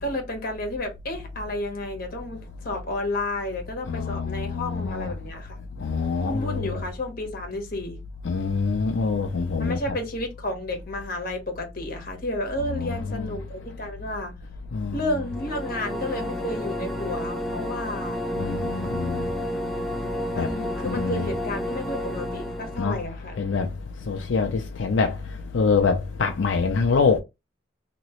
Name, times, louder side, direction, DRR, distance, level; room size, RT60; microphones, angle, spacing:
voice 1, 0.0-5.6 6.2-8.0 9.6-14.3 14.9-18.2 20.3-23.4, left 1 dB, 50° left, 1.2 m, -31 dB
voice 2, 3.9-5.1 5.8-6.8 8.2-10.0 12.7-13.3 14.7-15.2 18.4-19.2 20.4-20.5 20.9-21.3 22.8-23.0 23.4-23.7 24.1-25.1 25.5-27.2, left 4 dB, 85° left, 0.5 m, -25 dB
sound 1, 15.2-23.0, equal, ahead, 0.5 m, -31 dB
3.0 x 2.9 x 3.0 m
head